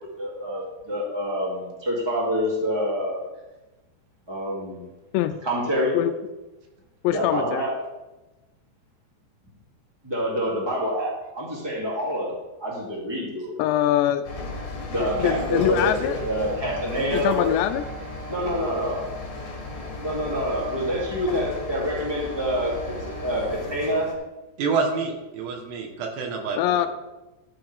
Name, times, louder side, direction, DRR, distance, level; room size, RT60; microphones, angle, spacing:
voice 1, 0.2-3.2 4.3-4.8 5.4-6.0 7.1-7.7 10.0-13.5 14.9-15.9 16.2-17.5 18.3-19.0 20.0-22.9 23.2-24.1, equal, 10° right, -4 dB, 1.9 m, -27 dB
voice 2, 7.0-7.7 13.6-14.2 15.0-16.2 17.2-17.8 26.6-26.9, left 12 dB, 90° left, 8 dB, 2.8 m, -23 dB
sound 1, 14.2-24.1, left 1 dB, 50° left, 2.6 m, -34 dB
voice 3, 24.6-26.9, right 4 dB, 80° right, 2 dB, 3.5 m, -27 dB
12.5 x 8.9 x 3.6 m, 1.1 s
omnidirectional pair, 4.9 m